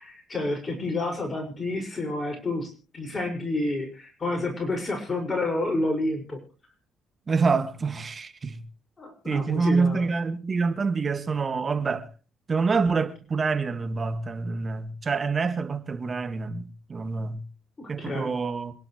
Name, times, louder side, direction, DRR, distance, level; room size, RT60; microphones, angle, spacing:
voice 1, 0.0-6.4 9.0-10.1 17.8-18.3, left 2 dB, 30° left, 5.9 m, -29 dB
voice 2, 7.3-8.6 9.3-12.1 12.5-17.4 17.9-18.7, right 4 dB, 40° right, 2.1 m, -26 dB
27.0 x 11.0 x 3.2 m
supercardioid pair, 60°, 0 cm